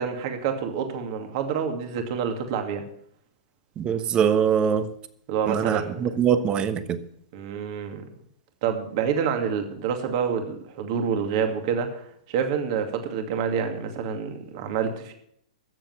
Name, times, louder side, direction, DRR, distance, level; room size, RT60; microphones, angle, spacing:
voice 1, 0.0-2.8 5.3-6.0 7.3-8.0 8.6-15.1, right 7 dB, 50° right, 5 dB, 2.4 m, -27 dB
voice 2, 3.8-4.9 5.5-7.0, right 8 dB, 25° right, 12 dB, 1.2 m, -23 dB
13.5 x 7.6 x 7.8 m, 0.70 s
hypercardioid pair, 125°, 4 cm